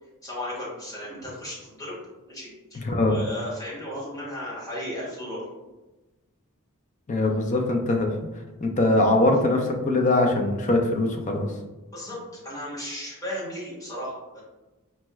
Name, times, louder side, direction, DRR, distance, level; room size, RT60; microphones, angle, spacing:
voice 1, 0.2-2.0 2.3-5.4 11.9-12.2 12.4-14.4, left 1 dB, 15° left, -8 dB, 1.3 m, -35 dB
voice 2, 2.8-3.2 7.1-8.1 8.6-11.5, left 2 dB, 35° left, 3 dB, 0.5 m, -22 dB
4.3 x 2.2 x 3.1 m, 1.1 s
head